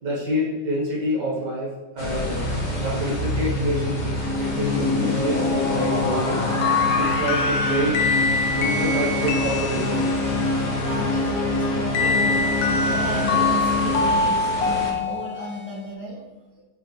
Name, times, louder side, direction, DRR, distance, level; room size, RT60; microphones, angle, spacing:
voice 1, 0.0-2.5 2.8-6.4 7.0-10.1, equal, 60° right, -5 dB, 2.1 m, -28 dB
sound 1, 2.0-14.2, left 2 dB, 55° left, 1.1 m, -25 dB
sound 2, 2.0-14.9, left 1 dB, 30° left, 0.9 m, -31 dB
sound 3, 6.6-10.4 11.9-15.7, left 3 dB, 85° left, 1.4 m, -24 dB
voice 2, 10.8-16.2, right 1 dB, 5° left, -7 dB, 1.5 m, -34 dB
7.8 x 4.1 x 3.2 m, 1.2 s
omnidirectional pair, 2.1 m